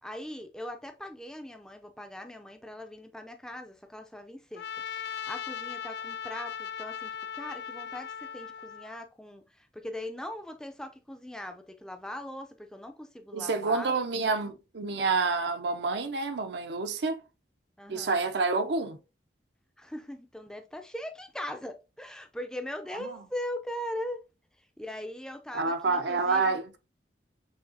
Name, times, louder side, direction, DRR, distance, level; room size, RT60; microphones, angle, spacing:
voice 1, 0.0-4.7 4.9-13.9 17.8-18.2 19.8-24.2 24.8-26.6, left 1 dB, 5° left, 0.4 m, -40 dB
Trumpet, 4.5-9.0, left 8 dB, 60° left, 0.4 m, -38 dB
voice 2, 13.3-17.2 17.9-19.0 23.0-23.2 25.5-26.8, right 4 dB, 65° right, 0.6 m, -28 dB
6.3 x 2.8 x 2.7 m
head